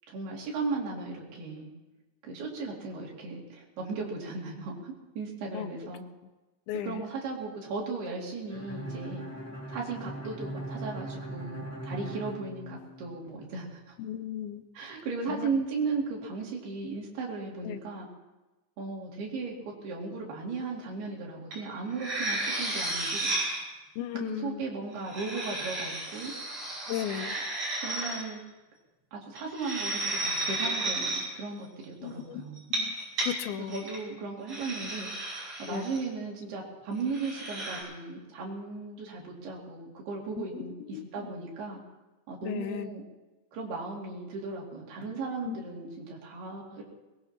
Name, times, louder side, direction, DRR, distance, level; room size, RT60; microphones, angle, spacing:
voice 1, 0.1-1.7 2.2-6.0 6.8-9.2 9.7-13.9 14.7-18.1 18.8-23.3 24.2-26.3 27.2-27.4 27.8-28.4 29.1-32.6 33.7-35.3 35.6-41.8 42.3-43.0 43.5-46.9, right 4 dB, 80° right, -2 dB, 4.7 m, -36 dB
voice 2, 6.7-7.0 14.0-14.6 15.3-15.6 17.6-17.8 24.0-24.6 26.9-27.4 32.0-32.4 32.7-33.8 35.7-35.9 40.4-40.7 40.9-41.0 42.4-42.9 45.5-45.6, left 11 dB, 80° left, 10 dB, 2.4 m, -36 dB
Bowed string instrument, 8.5-13.3, right 1 dB, 5° left, 2.3 m, -40 dB
sound 1, 21.5-21.6 21.9-23.6 24.9-28.2 29.4-31.2 32.6-33.3 33.7-34.0 34.5-36.0 37.1-37.8, right 2 dB, 40° right, 6.9 m, -33 dB
21.5 x 20.5 x 2.9 m, 1.1 s
omnidirectional pair, 4.5 m